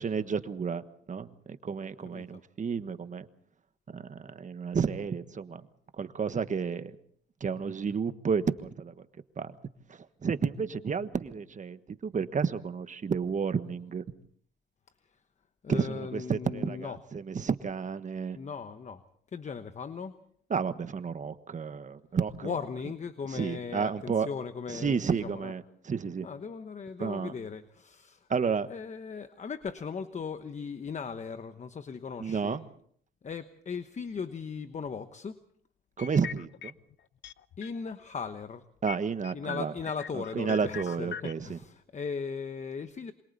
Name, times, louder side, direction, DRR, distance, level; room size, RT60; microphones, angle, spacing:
voice 1, 0.0-3.3 3.9-5.6 6.0-7.0 7.4-9.0 9.4-9.5 9.9-14.0 15.7-18.4 20.5-22.5 23.3-24.3 24.7-26.3 27.0-27.3 28.3-28.7 32.2-32.6 36.0-36.7 38.8-39.7 40.1-41.6, right 6 dB, 40° right, 11 dB, 1.4 m, -31 dB
voice 2, 15.6-17.0 18.3-19.0 19.3-20.2 22.4-25.5 26.2-28.3 28.7-32.6 33.2-35.4 37.6-38.6 39.3-43.1, left 5 dB, 35° left, 10 dB, 1.1 m, -38 dB
sound 1, 36.0-36.9 37.2-38.0 38.3-38.4 38.9-41.3, left 8 dB, 65° left, 0.8 m, -41 dB
27.5 x 25.0 x 4.1 m, 0.63 s
cardioid pair, 90°, 20 cm